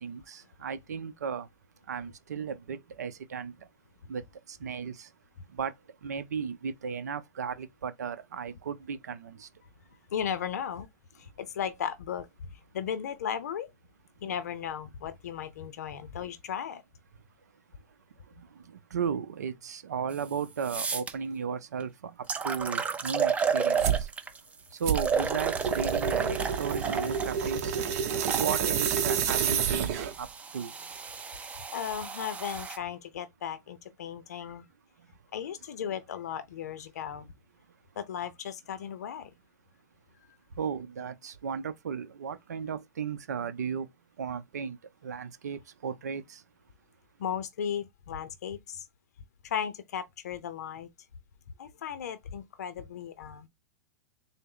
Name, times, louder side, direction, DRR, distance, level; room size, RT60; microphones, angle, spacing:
voice 1, 0.0-1.5 1.9-3.5 4.1-4.2 4.5-5.1 5.6-5.7 6.0-9.5 18.9-22.1 22.4-24.0 24.8-27.7 28.4-30.3 30.5-30.7 40.6-43.9 44.2-44.8 45.0-46.4, right 6 dB, 85° right, 0.5 m, -35 dB
voice 2, 10.1-10.9 11.1-13.7 14.2-16.8 31.7-34.7 35.3-37.3 38.0-39.3 47.2-48.9 49.4-50.9 51.6-53.5, left 8 dB, 75° left, 0.5 m, -36 dB
sound 1, 20.1-20.2 20.6-21.1 21.8-21.9 22.3-24.4 24.9-28.5 29.3-32.8, right 6 dB, 15° right, 0.5 m, -32 dB
sound 2, 23.8-24.1 24.8-30.3, right 8 dB, 55° right, 0.8 m, -29 dB
3.9 x 2.0 x 3.7 m
hypercardioid pair, 115°, 9 cm